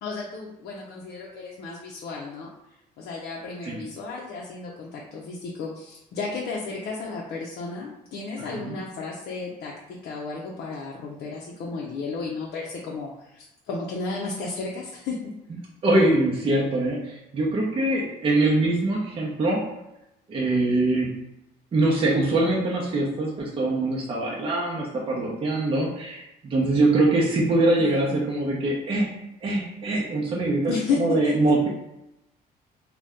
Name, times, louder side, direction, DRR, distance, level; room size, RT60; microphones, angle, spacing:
voice 1, 0.0-2.5 3.0-15.3 27.8-28.2 30.7-31.5, left 4 dB, 65° left, -3 dB, 0.5 m, -33 dB
voice 2, 15.8-19.6 20.3-21.2 21.7-29.1 29.4-31.7, right 2 dB, 35° right, -3 dB, 0.6 m, -23 dB
2.6 x 2.2 x 3.4 m, 0.88 s
cardioid pair, 110°, 17 cm